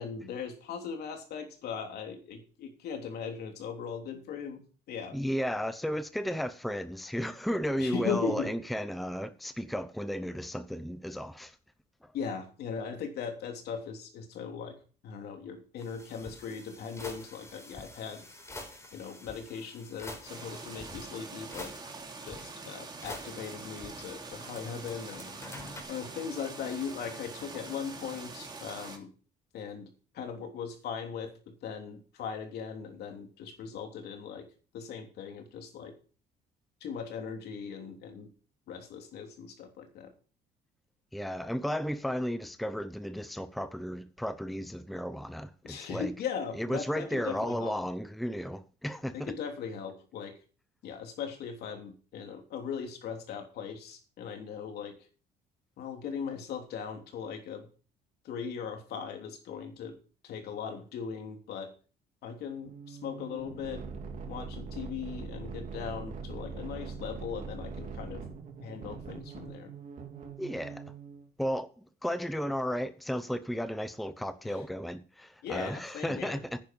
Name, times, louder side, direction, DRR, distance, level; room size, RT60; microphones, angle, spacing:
voice 1, 0.0-5.2 7.8-8.5 12.1-14.8 15.0-18.3 18.9-21.7 22.2-25.3 25.9-29.1 29.5-34.5 34.7-35.9 36.8-38.3 38.7-40.1 45.6-47.7 49.1-50.4 50.8-55.1 55.8-57.7 58.2-60.0 60.2-61.7 62.2-63.8 64.3-68.2 68.6-69.7 74.4-74.6 75.4-76.4, left 6 dB, 70° left, 3.3 m, -39 dB
voice 2, 5.1-11.6 12.0-12.1 41.1-46.1 46.5-49.3 70.4-70.8 71.4-76.6, equal, ahead, 0.8 m, -34 dB
sound 1, 15.8-21.0 21.5-22.3 23.0-24.6 24.9-25.8, left 2 dB, 15° left, 4.2 m, -46 dB
sound 2, 20.3-29.0, right 3 dB, 25° right, 3.0 m, -44 dB
sound 3, 62.6-71.3, right 5 dB, 50° right, 2.9 m, -42 dB
10.5 x 9.2 x 5.4 m
cardioid pair, 110°, 17 cm